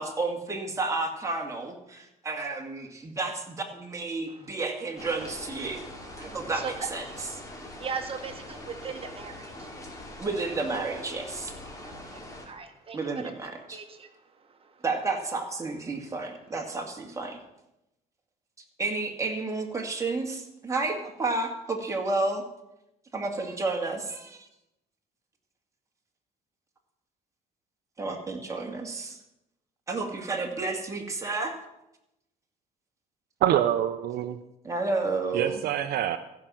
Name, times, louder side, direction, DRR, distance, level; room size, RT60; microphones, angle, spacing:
voice 1, 0.0-5.8 6.2-7.0 10.2-11.5 12.9-13.8 14.8-17.4 18.8-22.4 23.1-24.4 28.0-29.2 29.9-31.5 34.6-35.6, right 3 dB, 20° right, 1 dB, 2.3 m, -31 dB
voice 2, 4.3-5.1 5.6-10.2 11.8-14.8 15.9-16.1, right 5 dB, 35° right, 6 dB, 1.6 m, -41 dB
sound 1, 5.0-12.5, left 1 dB, 20° left, 2.7 m, -43 dB
voice 3, 33.4-34.4 35.3-36.2, right 11 dB, 65° right, 9 dB, 0.7 m, -25 dB
14.5 x 5.8 x 7.6 m, 0.88 s
cardioid pair, 110°, 17 cm